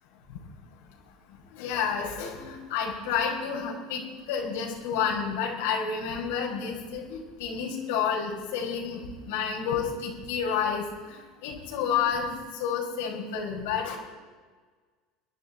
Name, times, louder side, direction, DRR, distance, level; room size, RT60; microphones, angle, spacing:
voice 1, 1.5-12.3 12.6-14.0, left 7 dB, 85° left, -1 dB, 5.4 m, -30 dB
28.5 x 11.5 x 4.1 m, 1.4 s
supercardioid pair, 125°, 0 cm